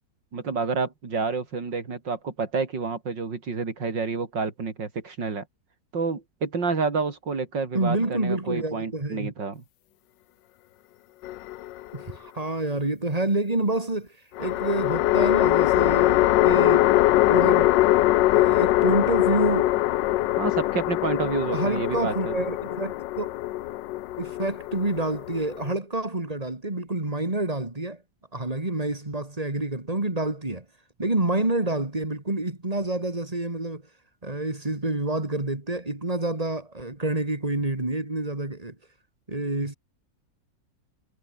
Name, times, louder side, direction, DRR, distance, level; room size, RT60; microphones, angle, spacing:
voice 1, 0.3-5.5 5.9-9.6 20.4-22.4, right 4 dB, 80° right, 4.0 m, -29 dB
voice 2, 7.7-9.3 11.9-14.1 14.4-17.0 17.2-17.7 18.3-19.7 21.5-23.4 24.2-28.0 28.3-30.6 31.0-33.8 34.2-38.8 39.3-39.7, right 2 dB, 20° right, 2.9 m, -28 dB
sound 1, 11.2-12.1 14.4-25.7, left 16 dB, 85° left, 1.3 m, -22 dB
omnidirectional pair, 1.9 m